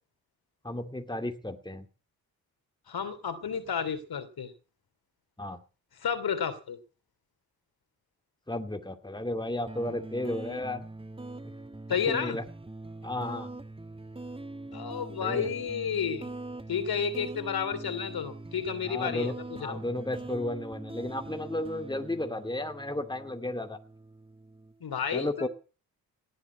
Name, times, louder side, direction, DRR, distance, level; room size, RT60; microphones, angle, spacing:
voice 1, 0.6-1.9 5.4-5.6 8.5-10.8 11.4-11.5 12.1-12.4 13.0-13.5 15.2-15.5 18.9-19.3 19.6-23.8 25.1-25.5, left 1 dB, 10° left, 6 dB, 2.4 m, -33 dB
voice 2, 2.9-4.5 6.0-6.8 11.9-12.4 14.7-16.3 16.7-19.8 24.8-25.5, left 7 dB, 60° left, 10 dB, 3.0 m, -31 dB
sound 1, 9.7-24.7, right 2 dB, 15° right, 1.4 m, -43 dB
18.5 x 7.5 x 8.6 m, 0.36 s
hypercardioid pair, 40°, 42 cm